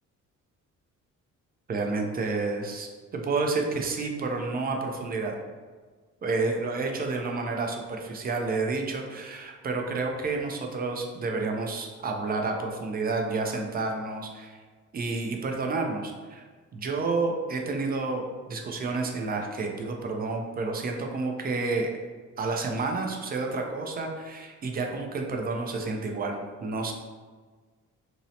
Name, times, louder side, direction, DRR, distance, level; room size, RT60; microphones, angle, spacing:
voice 1, 1.7-5.3 6.2-14.6 14.9-16.4 16.7-21.9 22.4-26.9, right 3 dB, 30° right, 2 dB, 0.4 m, -30 dB
2.7 x 2.0 x 2.7 m, 1.4 s
cardioid pair, 90°, 30 cm